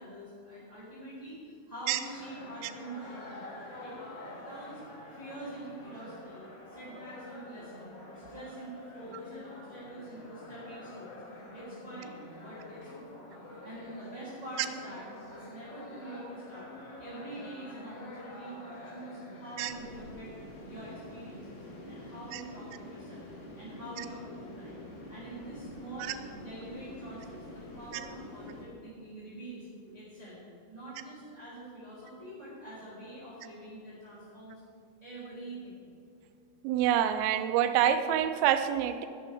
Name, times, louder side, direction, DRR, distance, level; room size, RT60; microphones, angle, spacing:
voice 1, 0.0-3.5 3.8-3.9 4.4-4.8 5.1-11.2 11.5-15.0 15.3-16.7 17.0-20.3 20.6-23.3 23.5-24.8 25.1-29.7 29.9-30.4 30.7-34.6 35.0-35.9, right 1 dB, 10° right, -11 dB, 2.0 m, -45 dB
sound 1, 2.0-19.8, left 1 dB, 45° left, 2.0 m, -47 dB
sound 2, 19.6-28.7, left 1 dB, 80° left, 5.2 m, -46 dB
voice 2, 36.6-39.1, right 10 dB, 90° right, 10 dB, 3.3 m, -26 dB
16.5 x 11.5 x 3.5 m, 2.4 s
omnidirectional pair, 5.8 m